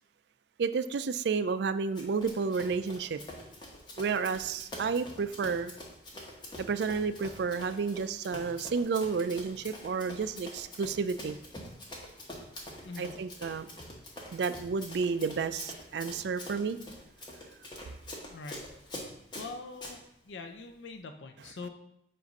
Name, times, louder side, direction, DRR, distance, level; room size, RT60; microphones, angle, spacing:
voice 1, 0.6-3.2 4.0-5.7 6.6-11.4 13.0-13.7 14.3-16.8, right 5 dB, 70° right, 12 dB, 0.4 m, -31 dB
Run, 1.9-20.0, left 1 dB, 25° left, 1.0 m, -45 dB
voice 2, 18.3-18.6 19.4-20.0 20.2-21.7, left 3 dB, 90° left, 5 dB, 0.5 m, -43 dB
7.5 x 2.6 x 5.2 m, 0.76 s
head